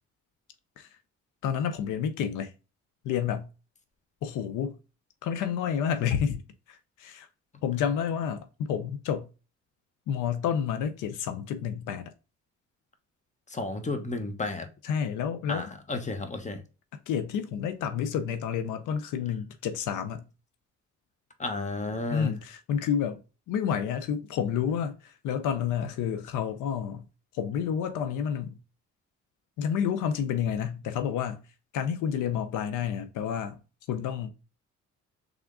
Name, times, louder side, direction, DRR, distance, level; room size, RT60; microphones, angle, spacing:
voice 1, 1.4-2.5 3.0-3.5 4.2-4.8 5.2-6.4 6.7-7.3 7.6-9.3 10.1-12.1 14.8-15.7 17.1-20.2 22.1-23.2 23.5-27.0 27.3-28.6 29.6-31.4 31.7-33.6 33.9-34.3, left 8 dB, 90° left, 0.7 m, -29 dB
voice 2, 13.5-14.7 15.5-16.6 21.4-22.3, left 2 dB, 25° left, 1.1 m, -32 dB
3.6 x 3.5 x 3.6 m
cardioid pair, 90°, 30 cm